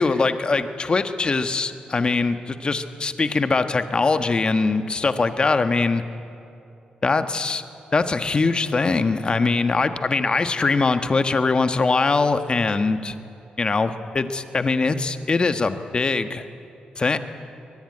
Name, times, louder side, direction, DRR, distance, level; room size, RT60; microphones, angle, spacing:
voice 1, 0.0-6.0 7.0-7.6 7.9-13.1 13.6-16.4 17.0-17.2, left 3 dB, 35° left, 9 dB, 1.4 m, -22 dB
22.0 x 22.0 x 9.8 m, 2.7 s
cardioid pair, 110°, 3 cm